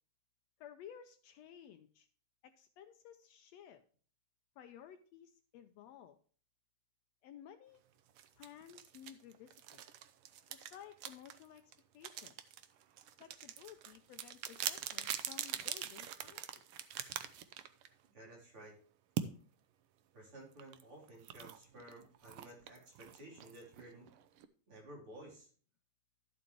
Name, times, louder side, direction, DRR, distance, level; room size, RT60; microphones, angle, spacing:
voice 1, 0.6-2.1 2.4-3.8 4.6-6.2 7.2-7.8 8.4-9.8 10.5-11.6 11.9-12.4 13.2-16.7, left 9 dB, 75° left, 9 dB, 1.7 m, -55 dB
sound 1, 8.2-18.1 19.2-19.3 20.6-24.5, right 10 dB, 90° right, 1.2 m, -44 dB
voice 2, 18.1-18.8 20.1-24.1 24.7-25.5, right 1 dB, 45° right, -3 dB, 4.9 m, -54 dB
12.5 x 7.8 x 3.0 m, 0.43 s
omnidirectional pair, 3.3 m